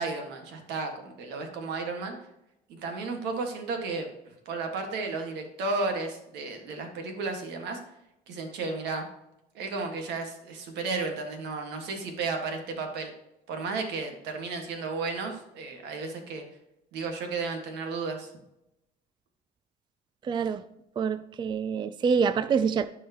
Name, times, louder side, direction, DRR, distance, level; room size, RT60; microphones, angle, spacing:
voice 1, 0.0-2.1 2.7-4.1 4.4-7.8 8.3-9.0 9.5-13.1 13.5-16.4 16.9-18.3, right 3 dB, 85° right, 1.7 m, -33 dB
voice 2, 20.2-20.6 21.0-22.9, right 6 dB, 25° right, 0.3 m, -26 dB
12.5 x 4.7 x 2.9 m
cardioid pair, 110°, 17 cm